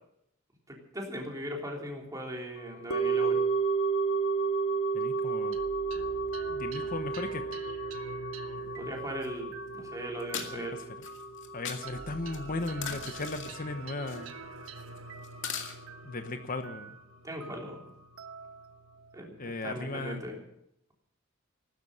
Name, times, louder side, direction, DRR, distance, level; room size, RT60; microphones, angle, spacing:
voice 1, 0.7-3.4 8.7-10.8 17.2-17.9 19.1-20.4, right 1 dB, 15° right, -1 dB, 3.5 m, -39 dB
sound 1, 2.9-13.2 13.4-13.5, right 4 dB, 90° left, 1.7 m, -32 dB
voice 2, 4.9-5.6 6.5-7.4 10.5-10.8 11.5-14.3 16.0-17.0 19.4-20.2, left 2 dB, 45° left, 7 dB, 1.0 m, -36 dB
sound 2, 5.5-20.2, right 4 dB, 85° right, 1.2 m, -47 dB
sound 3, 9.2-9.3 10.2-10.5 11.0-11.8 12.3-13.5 14.1-14.3 14.7-15.0 15.2-15.8, left 7 dB, 65° left, 2.3 m, -38 dB
15.5 x 13.0 x 6.5 m, 0.76 s
head